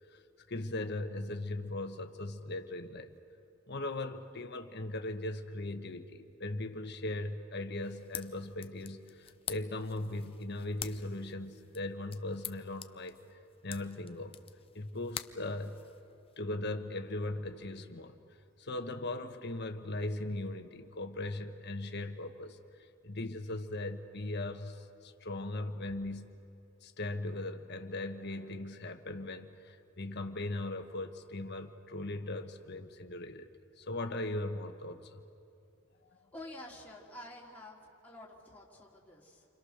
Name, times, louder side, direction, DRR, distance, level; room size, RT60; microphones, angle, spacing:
voice 1, 0.5-3.1 3.7-13.2 13.6-14.4 14.7-15.7 16.4-18.2 18.6-22.6 23.0-26.2 26.8-33.5 33.8-35.2, left 2 dB, 55° left, 7 dB, 1.4 m, -39 dB
sound 1, 7.8-16.4, left 9 dB, 30° left, 0.7 m, -47 dB
voice 2, 36.3-39.5, left 1 dB, 10° left, -4 dB, 3.4 m, -49 dB
29.5 x 25.0 x 6.6 m, 2.6 s
head